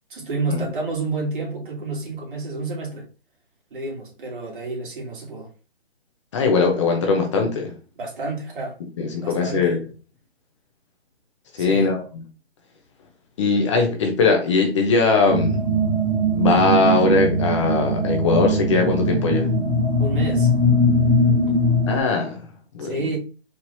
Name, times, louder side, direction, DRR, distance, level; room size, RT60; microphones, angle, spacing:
voice 1, 0.1-3.1 3.7-5.5 7.9-8.8 9.2-9.8 11.6-11.9 20.0-20.5 22.8-23.2, right 3 dB, 55° right, 2.4 m, -29 dB
voice 2, 6.3-7.7 9.0-9.8 11.5-12.2 13.4-15.6 16.3-19.5 21.9-22.4 22.7-23.0, left 4 dB, 30° left, 0.8 m, -20 dB
sound 1, 15.3-22.0, equal, 5° right, 1.0 m, -20 dB
4.6 x 3.8 x 2.7 m
hypercardioid pair, 150°, 32 cm